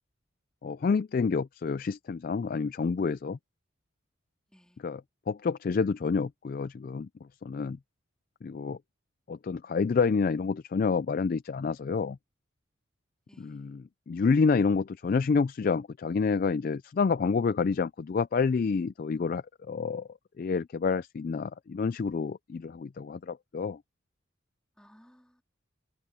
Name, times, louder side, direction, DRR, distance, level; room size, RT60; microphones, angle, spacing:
voice 1, 0.6-3.4 4.8-5.0 5.3-7.1 7.4-7.8 8.4-8.8 9.3-12.2 13.4-13.8 14.1-20.1 20.4-23.8, left 5 dB, 45° left, 0.3 m, -28 dB
voice 2, 4.5-4.8 13.3-13.8 24.7-25.4, equal, 5° left, 3.3 m, -59 dB
head